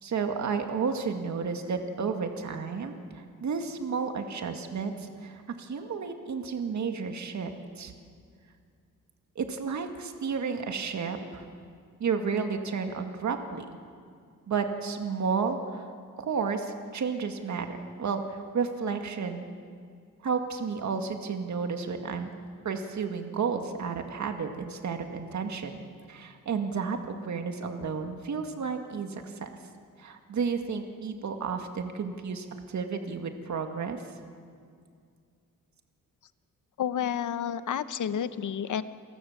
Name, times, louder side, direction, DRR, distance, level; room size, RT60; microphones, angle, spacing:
voice 1, 0.0-7.5 7.8-7.9 9.4-11.5 12.0-13.7 14.5-15.8 16.2-19.4 20.2-22.3 22.6-29.5 30.0-34.0, right 5 dB, 55° right, 5 dB, 2.0 m, -32 dB
voice 2, 36.8-38.8, left 9 dB, 60° left, 13 dB, 1.0 m, -30 dB
29.0 x 18.5 x 7.3 m, 2.2 s
wide cardioid pair, 130°, 33 cm